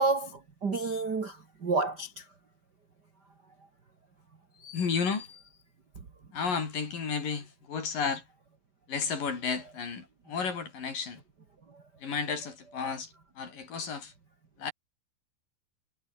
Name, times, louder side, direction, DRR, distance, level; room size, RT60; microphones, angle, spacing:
voice 1, 0.0-2.2 4.6-4.9, right 3 dB, 40° right, 1.5 m, -30 dB
voice 2, 4.7-5.3 6.3-8.2 8.9-11.2 12.0-13.1 13.4-14.1 14.6-14.7, left 5 dB, 50° left, 5.7 m, -32 dB
omnidirectional pair, 5.2 m